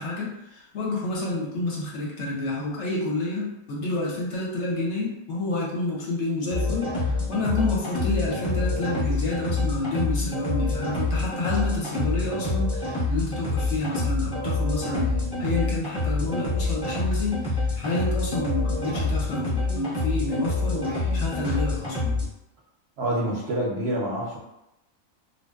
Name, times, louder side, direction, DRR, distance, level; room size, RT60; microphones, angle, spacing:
voice 1, 0.0-22.2, left 2 dB, 70° left, -3 dB, 0.8 m, -29 dB
sound 1, 6.5-22.3, left 3 dB, 20° left, 0.7 m, -27 dB
voice 2, 23.0-24.4, right 1 dB, 65° right, -4 dB, 0.7 m, -27 dB
2.5 x 2.1 x 2.3 m, 0.88 s
omnidirectional pair, 1.4 m